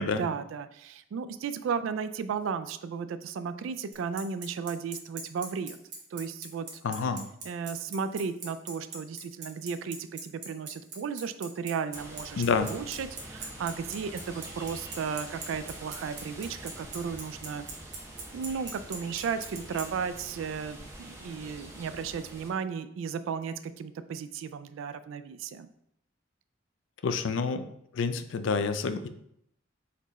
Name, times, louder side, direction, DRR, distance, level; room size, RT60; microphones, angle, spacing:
voice 1, 0.2-5.8 6.1-6.7 7.4-17.7 18.3-25.7, right 6 dB, 90° right, 11 dB, 0.3 m, -34 dB
Bicycle, 3.9-19.8, right 5 dB, 60° right, 1.1 m, -39 dB
voice 2, 6.8-7.3 12.4-12.7 27.0-27.7 27.9-29.1, left 5 dB, 75° left, 10 dB, 0.4 m, -28 dB
sound 1, 11.9-22.5, right 1 dB, 15° right, 0.8 m, -45 dB
4.2 x 3.0 x 4.0 m, 0.74 s
head